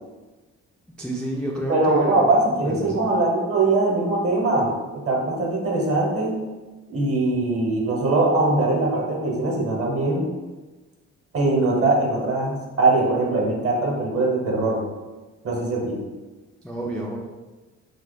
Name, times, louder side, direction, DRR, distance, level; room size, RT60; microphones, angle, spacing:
voice 1, 1.0-2.2 2.6-3.0 16.6-17.2, right 1 dB, 5° left, -3 dB, 0.4 m, -30 dB
voice 2, 1.7-6.4 6.9-10.3 11.3-14.8 15.4-16.0, right 2 dB, 50° right, -1 dB, 1.0 m, -21 dB
2.8 x 2.3 x 3.9 m, 1.2 s
cardioid pair, 90°, 30 cm